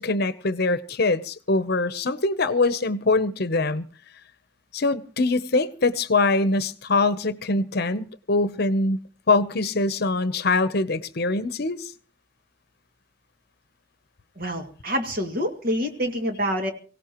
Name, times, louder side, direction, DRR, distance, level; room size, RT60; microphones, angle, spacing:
voice 1, 0.0-3.8 4.7-9.0 9.3-11.9, left 3 dB, 55° left, 0.8 m, -23 dB
voice 2, 14.4-16.7, equal, 50° right, 2.2 m, -27 dB
24.5 x 17.0 x 3.0 m
head